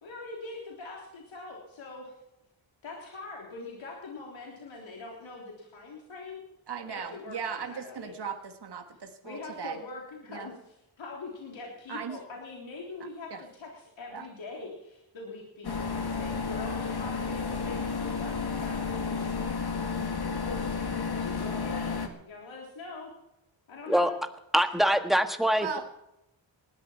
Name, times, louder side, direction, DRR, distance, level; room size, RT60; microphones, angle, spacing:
voice 1, 0.0-2.1 2.8-6.4 6.9-8.2 9.2-19.9 20.3-23.1 23.7-24.2 24.6-24.7, left 3 dB, 85° left, -2 dB, 3.6 m, -43 dB
voice 2, 6.7-9.8 10.3-10.5 11.9-12.2 13.3-13.4 14.1-14.3 25.6-25.8, right 6 dB, 60° right, 5 dB, 1.8 m, -37 dB
sound 1, 15.6-22.1, left 5 dB, 55° left, 2.4 m, -32 dB
voice 3, 24.5-25.8, equal, ahead, 6 dB, 1.6 m, -24 dB
19.5 x 14.0 x 4.5 m, 0.87 s
cardioid pair, 75°, 45 cm